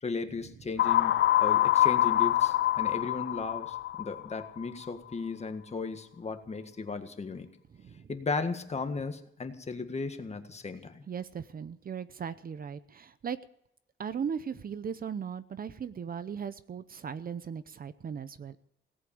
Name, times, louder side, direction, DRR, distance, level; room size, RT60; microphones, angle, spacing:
voice 1, 0.0-7.5 8.1-11.0, left 4 dB, 35° left, 7 dB, 1.7 m, -36 dB
sound 1, 0.8-4.6, left 13 dB, 70° left, 0.5 m, -25 dB
voice 2, 7.7-8.1 11.1-13.4 14.0-18.6, right 7 dB, 45° right, 14 dB, 0.7 m, -38 dB
17.5 x 8.2 x 8.8 m, 0.74 s
cardioid pair, 115°, 20 cm